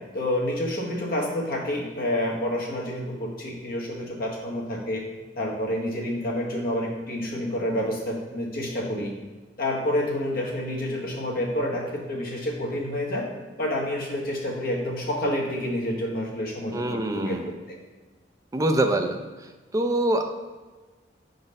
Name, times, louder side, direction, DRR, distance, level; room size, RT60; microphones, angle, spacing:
voice 1, 0.1-5.0 5.3-9.1 9.6-13.3 13.6-17.4, left 1 dB, 55° left, -2 dB, 1.3 m, -28 dB
voice 2, 16.7-17.5 18.5-19.2 19.7-20.4, right 1 dB, 20° right, 5 dB, 0.5 m, -24 dB
4.8 x 4.0 x 5.3 m, 1.3 s
head